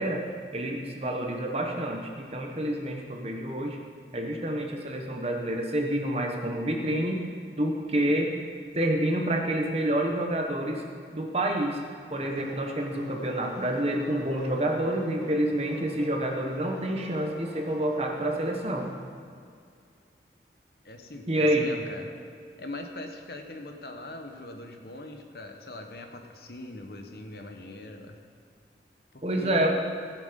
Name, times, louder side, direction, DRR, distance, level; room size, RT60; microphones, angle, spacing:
voice 1, 0.0-3.8 4.1-7.2 7.6-8.3 8.7-10.8 11.1-11.8 12.1-18.9 21.3-21.7 29.2-29.7, right 1 dB, 35° right, 1 dB, 1.2 m, -28 dB
sound 1, 12.2-19.0, left 1 dB, ahead, 3.6 m, -46 dB
voice 2, 20.8-22.1 22.6-28.2 29.1-29.7, left 2 dB, 60° left, 4 dB, 1.1 m, -41 dB
16.0 x 7.5 x 5.2 m, 2.3 s
head